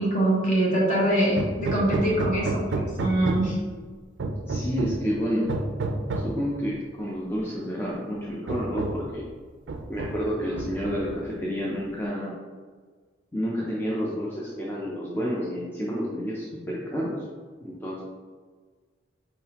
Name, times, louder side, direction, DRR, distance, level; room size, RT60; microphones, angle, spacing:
voice 1, 0.0-3.6, right 1 dB, 45° left, -5 dB, 1.4 m, -24 dB
Hammer, 1.4-3.6 4.2-5.1 5.5-6.4 7.4-7.5 7.9-8.1 8.5-9.1 9.7-10.3 10.6-11.2, right 2 dB, 70° right, 0.4 m, -30 dB
voice 2, 4.5-5.5 6.2-9.3 9.9-12.4 13.3-17.2 17.6-18.0, equal, 10° left, -5 dB, 0.5 m, -30 dB
4.6 x 3.7 x 2.9 m, 1.5 s
head